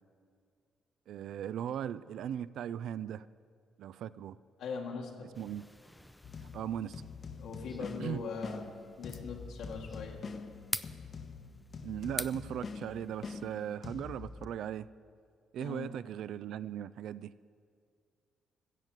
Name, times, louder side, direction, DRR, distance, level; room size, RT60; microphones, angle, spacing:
voice 1, 1.1-3.2 3.8-4.4 5.4-5.6 6.5-7.0 8.0-8.2 11.8-14.9 15.5-17.3, right 10 dB, 75° right, 17 dB, 0.3 m, -38 dB
voice 2, 4.6-5.3 7.4-8.6 9.0-10.2 15.6-15.9, left 5 dB, 85° left, -2 dB, 1.8 m, -40 dB
sound 1, 5.3-13.8, left 1 dB, 5° left, 0.4 m, -46 dB
sound 2, 6.2-14.5, left 5 dB, 45° left, 0.8 m, -45 dB
14.0 x 7.4 x 7.9 m, 2.2 s
cardioid pair, 90°, 0 cm